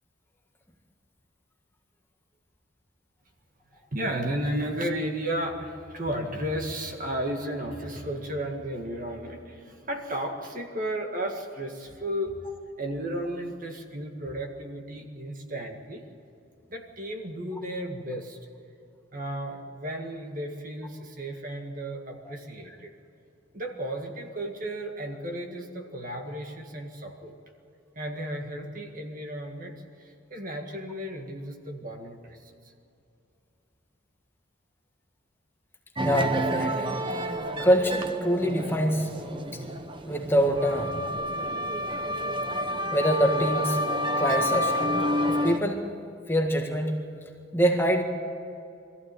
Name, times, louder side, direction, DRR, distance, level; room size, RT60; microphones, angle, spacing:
voice 1, 3.9-12.3 12.8-16.0 16.7-18.4 19.1-22.9 23.5-27.3 28.0-29.8 30.3-32.4, right 1 dB, 40° right, 3 dB, 1.9 m, -33 dB
voice 2, 36.0-36.9 37.6-39.1 39.5-39.6 40.0-41.1 42.5-42.6 42.9-43.8 44.2-45.9 46.3-47.0 47.5-48.0, equal, 10° left, 2 dB, 1.7 m, -25 dB
sound 1, 36.0-45.6, equal, 25° right, 1.0 m, -29 dB
23.5 x 14.5 x 9.3 m, 2.6 s
head